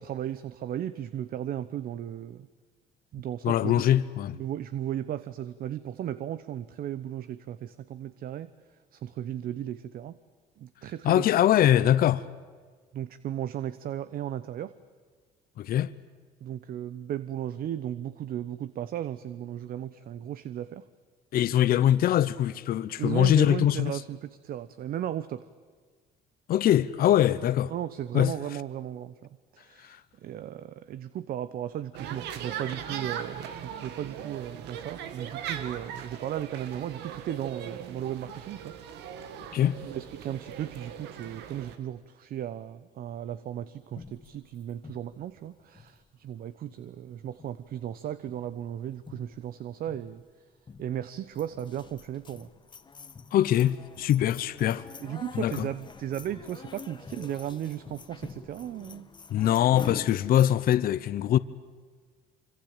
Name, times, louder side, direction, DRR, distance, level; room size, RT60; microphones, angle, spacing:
voice 1, 0.0-2.5 3.1-3.9 4.3-8.5 8.9-10.2 10.6-11.3 12.9-14.7 16.4-20.9 23.0-25.5 27.7-38.7 39.8-50.2 50.8-52.5 55.0-59.1, right 11 dB, 60° right, 0.9 m, -35 dB
voice 2, 3.4-4.4 11.0-12.2 15.6-15.9 21.3-23.9 26.5-27.7 28.1-28.3 29.8-30.0 39.5-39.8 53.3-54.9 55.3-55.7 59.3-61.4, left 11 dB, 60° left, 0.8 m, -23 dB
sound 1, 31.9-41.8, right 8 dB, 85° right, 2.0 m, -39 dB
sound 2, 44.0-46.4 46.7-47.1 47.4-48.0 48.3-48.6 48.9-49.6 49.8-50.2 50.7-51.0 51.3-60.8, left 5 dB, 25° left, 1.3 m, -46 dB
25.5 x 25.5 x 9.0 m
cardioid pair, 110°, 17 cm